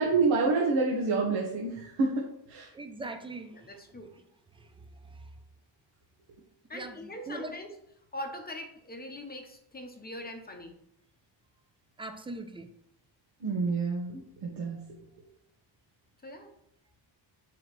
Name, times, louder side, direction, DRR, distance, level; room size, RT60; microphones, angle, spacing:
voice 1, 0.0-2.7 13.4-14.8, right 3 dB, 90° right, -4 dB, 1.4 m, -28 dB
voice 2, 2.7-3.7 4.5-4.7 5.0-5.2 6.7-7.5 12.0-12.7 14.7-14.8, right 2 dB, 10° right, 7 dB, 0.4 m, -41 dB
voice 3, 3.5-4.1 6.7-7.7 8.1-10.8 16.2-16.5, left 1 dB, 20° left, 4 dB, 0.8 m, -42 dB
7.8 x 5.0 x 3.1 m, 0.75 s
cardioid pair, 160°, 46 cm